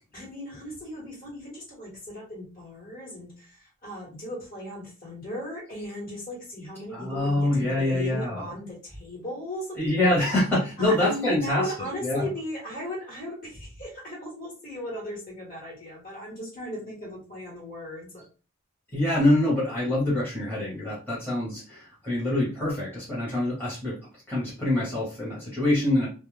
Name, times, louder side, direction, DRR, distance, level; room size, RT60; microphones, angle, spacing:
voice 1, 0.1-9.8 10.8-18.2, left 1 dB, 40° left, -3 dB, 1.2 m, -37 dB
voice 2, 6.9-8.5 9.8-12.3 18.9-24.0 24.3-26.1, left 1 dB, 10° left, -8 dB, 1.0 m, -25 dB
2.3 x 2.1 x 3.1 m, 0.36 s
head